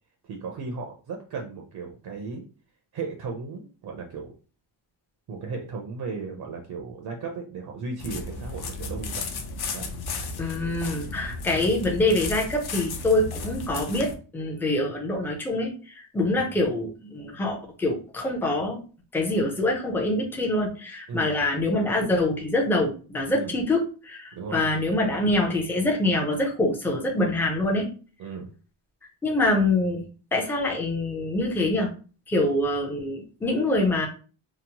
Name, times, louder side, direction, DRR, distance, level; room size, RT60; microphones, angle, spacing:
voice 1, 0.2-2.4 2.9-4.4 5.3-9.1 9.7-9.9 16.3-16.5 21.1-21.4 23.3-23.5 24.3-24.7 28.2-28.5, right 4 dB, 50° right, 2 dB, 0.6 m, -35 dB
sound 1, 8.0-14.1, left 3 dB, 50° left, 0.6 m, -34 dB
voice 2, 10.4-18.8 19.1-27.9 29.2-30.0 30.3-31.9 32.3-34.1, left 2 dB, 5° left, 0 dB, 0.4 m, -25 dB
2.9 x 2.0 x 2.8 m, 0.37 s
cardioid pair, 140°, 49 cm